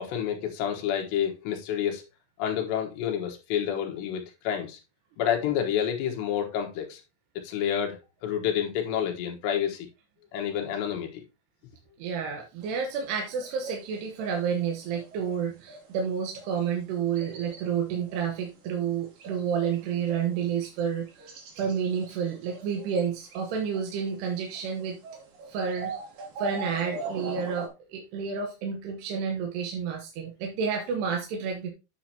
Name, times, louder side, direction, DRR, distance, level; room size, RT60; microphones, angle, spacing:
voice 1, 0.0-2.0 2.4-4.8 5.2-7.0 7.4-9.9 10.3-11.2, left 9 dB, 80° left, 3.5 m, -29 dB
voice 2, 12.0-25.0 25.5-25.9 26.4-31.7, right 7 dB, 75° right, 3.1 m, -30 dB
sound 1, 12.6-15.3 15.7-16.7 17.2-17.7 18.0-18.9 19.2-19.8 20.1-20.8 21.1-24.0 24.5-27.7, right 4 dB, 60° right, 3.4 m, -41 dB
9.5 x 7.1 x 2.9 m
omnidirectional pair, 5.0 m